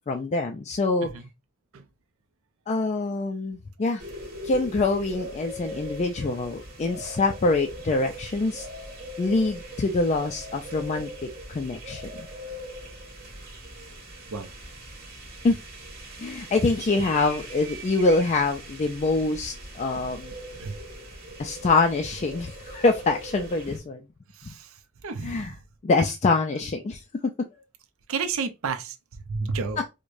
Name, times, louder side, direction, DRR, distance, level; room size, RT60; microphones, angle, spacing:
voice 1, 0.1-1.1 2.7-4.0 4.4-8.7 9.2-12.0 15.4-15.6 16.2-20.3 21.4-24.0 25.2-25.5 25.8-27.0 29.8-29.9, left 3 dB, 30° left, 0.3 m, -25 dB
sound 1, 4.0-23.8, right 1 dB, 45° right, 1.5 m, -40 dB
voice 2, 24.3-25.5 28.1-29.9, right 5 dB, 70° right, 0.5 m, -32 dB
4.7 x 2.1 x 2.5 m
head